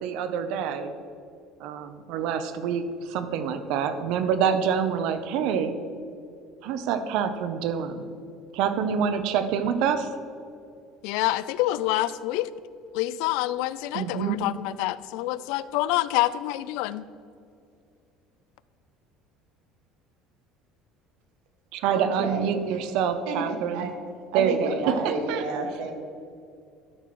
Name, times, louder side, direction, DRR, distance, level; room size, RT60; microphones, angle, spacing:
voice 1, 0.0-0.9 1.6-5.7 6.6-8.1 8.5-10.1 13.9-14.4 21.7-23.9 24.3-24.7 25.3-25.4, right 7 dB, 70° right, 10 dB, 0.7 m, -26 dB
voice 2, 11.0-12.5 12.9-17.1, left 15 dB, 75° left, 16 dB, 0.3 m, -27 dB
voice 3, 21.9-22.8 23.3-23.9 24.3-25.9, right 3 dB, 90° right, 4 dB, 1.5 m, -30 dB
12.0 x 4.7 x 6.0 m, 2.4 s
cardioid pair, 155°, 0 cm